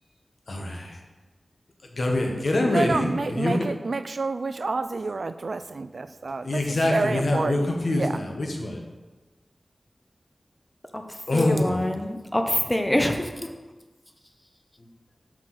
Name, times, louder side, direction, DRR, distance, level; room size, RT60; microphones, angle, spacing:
voice 1, 0.5-1.0 1.9-3.6 6.4-8.8 11.3-11.9 14.8-14.9, left 1 dB, 65° left, 1 dB, 1.3 m, -25 dB
voice 2, 2.7-7.7 8.0-8.1, right 3 dB, 70° right, 11 dB, 0.3 m, -29 dB
voice 3, 10.9-13.5, left 1 dB, 15° left, 5 dB, 0.8 m, -26 dB
5.8 x 4.8 x 6.2 m, 1.2 s
wide cardioid pair, 60°, 0 cm